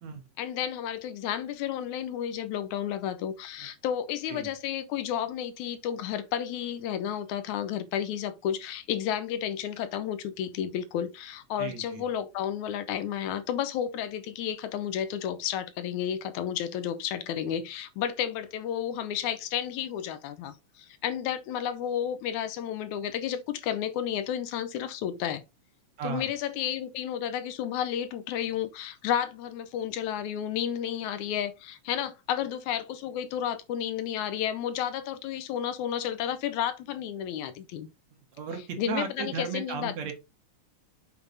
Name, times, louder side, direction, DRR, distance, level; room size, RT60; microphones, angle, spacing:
voice 1, 0.4-25.4 26.0-37.9 38.8-40.1, left 9 dB, 80° left, 2.0 m, -32 dB
voice 2, 11.6-12.1 26.0-26.3 38.3-40.1, right 6 dB, 65° right, 2.6 m, -35 dB
7.4 x 4.8 x 3.8 m
omnidirectional pair, 3.6 m